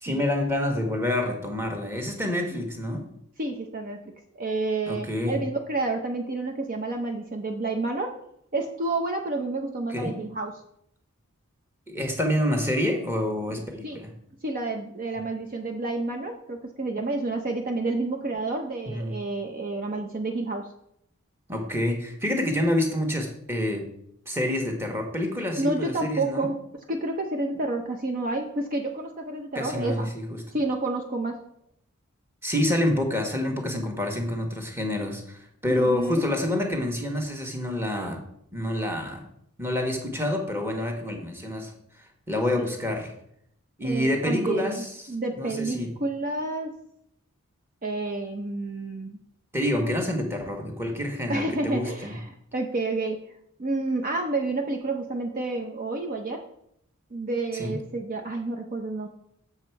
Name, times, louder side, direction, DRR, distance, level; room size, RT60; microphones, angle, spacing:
voice 1, 0.0-3.1 4.9-5.4 9.9-10.2 11.9-14.1 18.9-19.2 21.5-23.9 24.3-26.5 29.5-30.4 32.4-38.2 38.5-39.3 39.6-41.7 42.3-43.1 43.8-45.9 49.5-52.2 57.5-57.8, left 1 dB, 10° right, 2 dB, 1.3 m, -27 dB
voice 2, 3.4-4.0 4.4-8.1 8.5-10.5 13.8-14.0 14.4-20.7 25.6-30.1 30.5-31.4 35.7-36.3 42.6-42.7 43.8-46.7 47.8-49.2 51.3-53.2 53.6-56.4 57.1-59.1, right 2 dB, 40° right, 4 dB, 0.7 m, -29 dB
7.2 x 6.9 x 4.6 m, 0.72 s
head